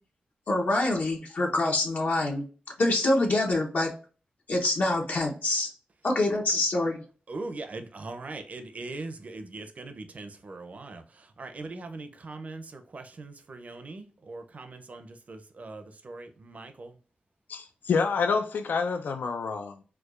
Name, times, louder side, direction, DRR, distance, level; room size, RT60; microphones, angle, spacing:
voice 1, 0.5-2.4 2.8-3.9 4.5-5.7 6.0-7.0, left 2 dB, 60° left, 0.8 m, -25 dB
voice 2, 7.3-17.0, right 3 dB, 50° right, 0.5 m, -41 dB
voice 3, 17.5-19.8, left 5 dB, 85° left, 0.4 m, -28 dB
4.5 x 2.3 x 2.4 m
wide cardioid pair, 90°, 3 cm